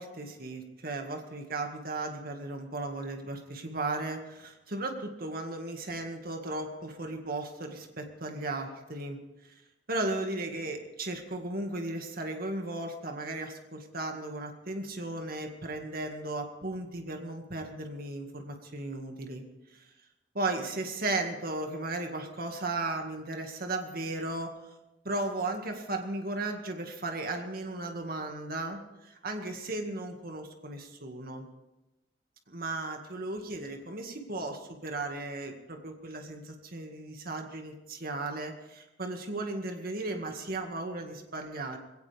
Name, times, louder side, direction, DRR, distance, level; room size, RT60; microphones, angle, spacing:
voice 1, 0.0-9.5 9.9-19.4 19.7-19.8 20.3-24.5 25.0-31.5 32.5-41.8, right 2 dB, 55° right, 4 dB, 2.1 m, -36 dB
21.0 x 17.0 x 3.5 m, 1.0 s
head